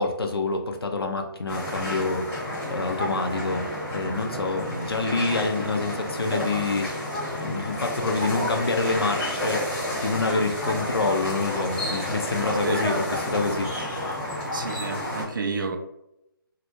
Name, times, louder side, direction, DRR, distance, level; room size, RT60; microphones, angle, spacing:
voice 1, 0.0-7.1 7.4-9.6 10.0-13.9, left 3 dB, 90° left, 4 dB, 0.4 m, -27 dB
sound 1, 1.5-15.2, left 1 dB, 10° left, 0.8 m, -30 dB
voice 2, 14.5-15.8, right 4 dB, 60° right, 6 dB, 0.4 m, -30 dB
2.2 x 2.0 x 2.8 m, 0.86 s
figure-of-eight pair, 145°, 12 cm